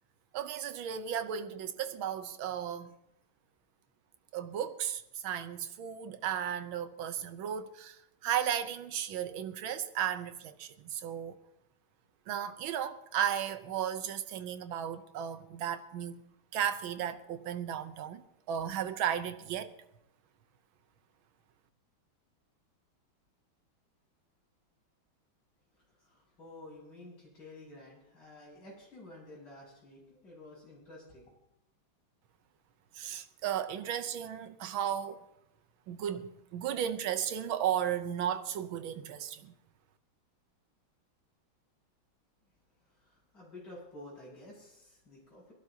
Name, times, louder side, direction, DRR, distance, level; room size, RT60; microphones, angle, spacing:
voice 1, 0.3-2.9 4.3-8.0 8.2-11.3 12.3-16.2 16.5-18.2 18.5-19.7 33.0-35.2 35.9-39.5, right 9 dB, 80° right, 1.6 m, -35 dB
voice 2, 26.0-31.3 43.3-45.5, left 1 dB, 60° left, 7.5 m, -51 dB
24.5 x 12.0 x 2.8 m
omnidirectional pair, 2.2 m